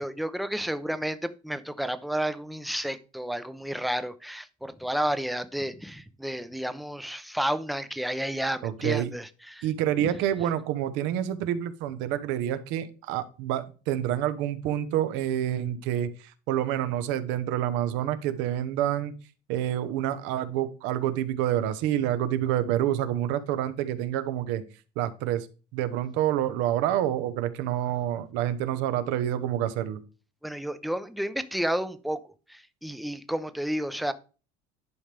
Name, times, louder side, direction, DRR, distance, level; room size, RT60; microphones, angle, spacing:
voice 1, 0.0-9.7 10.0-10.1 30.4-34.1, right 1 dB, ahead, 0.6 m, -31 dB
voice 2, 8.6-9.1 9.6-19.1 19.5-24.6 25.0-25.5 25.7-30.0, right 11 dB, 75° right, 1.0 m, -28 dB
11.0 x 5.3 x 3.4 m
supercardioid pair, 115°, 19 cm